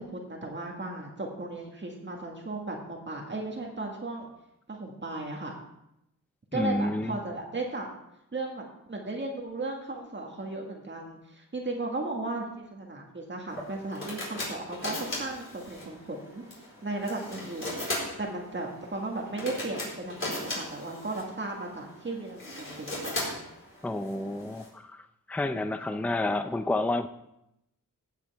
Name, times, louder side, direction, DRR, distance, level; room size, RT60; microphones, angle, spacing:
voice 1, 0.0-4.3 4.7-5.5 6.5-7.9 8.3-16.4 16.8-17.8 18.2-23.4, right 2 dB, 35° right, 0 dB, 1.8 m, -36 dB
voice 2, 6.5-7.1 23.8-25.0 25.3-27.1, left 2 dB, 5° left, 9 dB, 0.5 m, -29 dB
sound 1, 13.5-24.7, left 1 dB, 40° left, 4.4 m, -38 dB
16.5 x 8.2 x 3.5 m, 0.83 s
wide cardioid pair, 100°, 33 cm